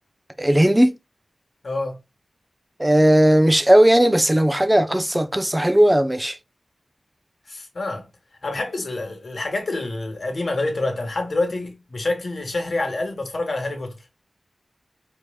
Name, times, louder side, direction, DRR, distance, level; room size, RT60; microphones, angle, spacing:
voice 1, 0.4-1.0 2.8-6.4, right 1 dB, 10° right, 0.5 m, -17 dB
voice 2, 1.6-2.0 7.5-8.1 8.4-14.0, left 2 dB, 60° left, 1.3 m, -27 dB
4.8 x 2.9 x 2.2 m
wide cardioid pair, 80°, 0 cm